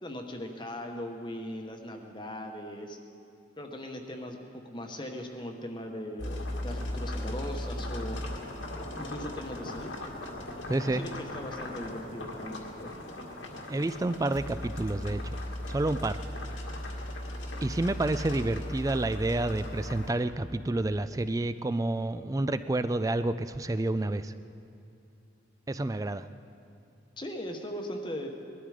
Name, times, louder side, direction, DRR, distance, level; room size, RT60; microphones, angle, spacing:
voice 1, 0.0-3.0 3.6-4.4 4.6-8.2 9.0-9.9 10.8-12.9 15.4-15.6 27.2-28.3, left 1 dB, 25° left, 3 dB, 1.1 m, -39 dB
sound 1, 6.2-20.1, left 1 dB, 90° left, 1.9 m, -37 dB
voice 2, 10.7-11.1 13.7-15.4 15.7-16.2 17.6-24.3 25.7-26.3, right 2 dB, 20° right, 12 dB, 0.3 m, -29 dB
20.5 x 12.5 x 4.9 m, 2.6 s
head